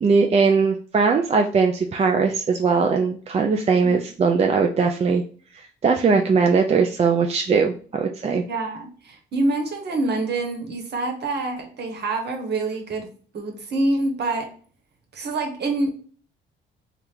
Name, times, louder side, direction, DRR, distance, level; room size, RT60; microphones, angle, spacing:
voice 1, 0.0-5.2 5.5-8.4, right 5 dB, 30° right, 3 dB, 0.4 m, -20 dB
voice 2, 8.4-14.5 15.1-15.9, right 2 dB, 55° right, 3 dB, 1.1 m, -26 dB
3.5 x 2.4 x 4.4 m, 0.43 s
cardioid pair, 90°, 20 cm